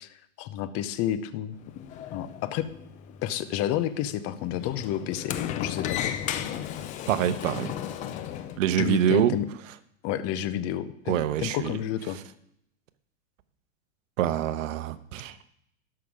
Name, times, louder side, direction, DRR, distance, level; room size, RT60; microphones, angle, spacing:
voice 1, 0.0-1.6 2.1-2.7 3.2-6.2 8.8-9.5 10.0-12.2, left 11 dB, 35° left, 13 dB, 0.7 m, -30 dB
Sliding door, 1.5-8.6, left 10 dB, 20° left, 0.3 m, -35 dB
voice 2, 7.1-7.8 8.6-9.4 11.1-11.7 14.2-15.5, right 11 dB, 65° right, 13 dB, 0.9 m, -25 dB
12.5 x 5.8 x 4.9 m, 0.73 s
hypercardioid pair, 115°, 42 cm